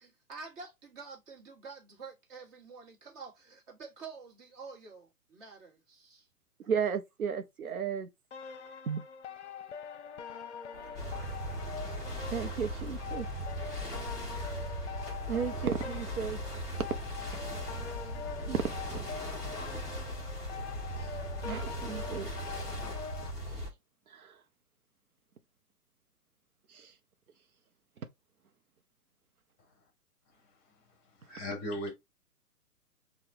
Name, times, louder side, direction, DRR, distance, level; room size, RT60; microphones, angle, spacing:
voice 1, 0.0-6.3, right 4 dB, 25° right, 1.4 m, -48 dB
voice 2, 6.6-8.1 8.9-9.0 12.3-13.6 15.3-16.4 16.8-16.9 17.3-17.7 18.4-19.1 21.0-21.2 21.4-22.3 23.5-23.7 24.1-24.4 26.7-26.9 31.4-31.5, right 7 dB, 65° right, 0.9 m, -35 dB
sound 1, 8.3-23.3, left 7 dB, 50° left, 0.8 m, -44 dB
sound 2, 10.7-16.2, right 4 dB, 50° right, 1.4 m, -52 dB
sound 3, 10.9-23.7, equal, ahead, 0.5 m, -38 dB
voice 3, 31.1-31.9, equal, 20° left, 1.3 m, -37 dB
6.1 x 2.4 x 3.4 m
figure-of-eight pair, 130°, 46 cm